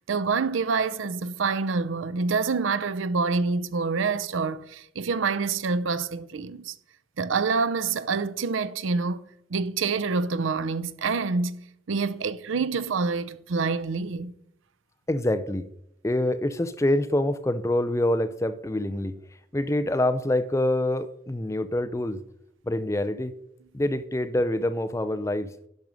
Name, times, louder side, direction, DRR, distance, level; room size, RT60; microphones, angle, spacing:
voice 1, 0.0-6.7 7.2-9.2 9.5-14.3, right 4 dB, 85° right, 0.6 m, -27 dB
voice 2, 15.1-15.7 16.0-19.2 19.5-22.2 22.7-23.4 23.7-25.5, left 1 dB, 15° left, 0.5 m, -26 dB
10.5 x 5.2 x 6.2 m
head